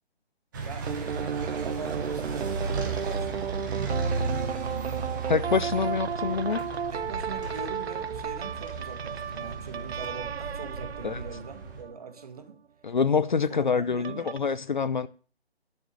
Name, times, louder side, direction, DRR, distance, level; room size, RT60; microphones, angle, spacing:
sound 1, 0.5-11.8, right 4 dB, 20° right, 2.0 m, -35 dB
voice 1, 0.6-1.1 1.6-3.5 4.1-5.3 6.9-12.6 13.5-14.4, right 5 dB, 35° right, 2.0 m, -42 dB
sound 2, 0.9-12.2 14.0-14.4, right 7 dB, 75° right, 0.6 m, -34 dB
voice 2, 5.3-6.6 11.0-11.2 12.8-15.1, left 5 dB, 45° left, 0.7 m, -26 dB
sound 3, 6.3-7.1 7.4-7.8 8.2-9.1 9.5-9.6 10.0-10.1, left 3 dB, 85° left, 3.8 m, -50 dB
11.5 x 6.6 x 7.5 m
hypercardioid pair, 175°, 32 cm